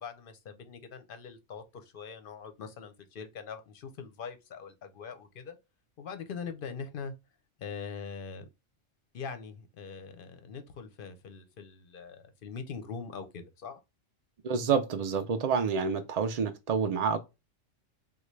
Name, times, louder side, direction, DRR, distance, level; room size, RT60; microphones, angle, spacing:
voice 1, 0.0-5.6 6.0-7.1 7.6-8.4 9.1-13.8, left 5 dB, 55° left, 0.7 m, -42 dB
voice 2, 14.4-17.2, right 6 dB, 70° right, 0.3 m, -28 dB
3.8 x 2.3 x 3.1 m
omnidirectional pair, 1.3 m